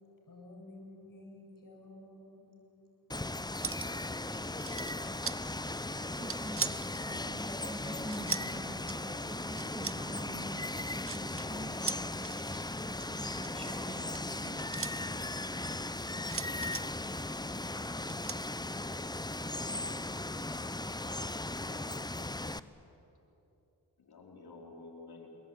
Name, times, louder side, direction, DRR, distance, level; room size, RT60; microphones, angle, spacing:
voice 1, 0.3-2.5, left 1 dB, 60° left, 0 dB, 7.7 m, -51 dB
Water, 3.1-22.6, left 2 dB, 10° left, 0.8 m, -37 dB
sound 1, 3.6-4.0 4.3-5.4 6.0-6.9 7.7-8.5 8.9-9.0 9.5-10.0 10.6-11.4 11.8-12.4 13.3-14.9 16.3-16.8 18.1-18.4, right 5 dB, 35° right, 1.0 m, -38 dB
voice 2, 6.2-15.7, right 1 dB, 15° right, 3 dB, 3.3 m, -46 dB
voice 3, 24.0-25.3, left 3 dB, 85° left, 1 dB, 4.1 m, -53 dB
27.0 x 22.5 x 9.4 m, 2.9 s
cardioid pair, 55°, 37 cm